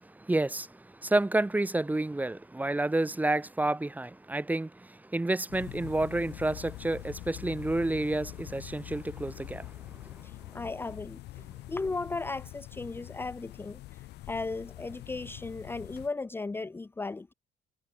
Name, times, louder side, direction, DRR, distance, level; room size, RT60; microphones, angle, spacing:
voice 1, 0.0-9.7 10.0-10.1, right 2 dB, 10° right, 1.1 m, -30 dB
sound 1, 5.5-16.1, left 17 dB, 80° left, 2.3 m, -44 dB
voice 2, 10.2-17.3, left 3 dB, 15° left, 0.6 m, -36 dB
cardioid pair, 110°, 17 cm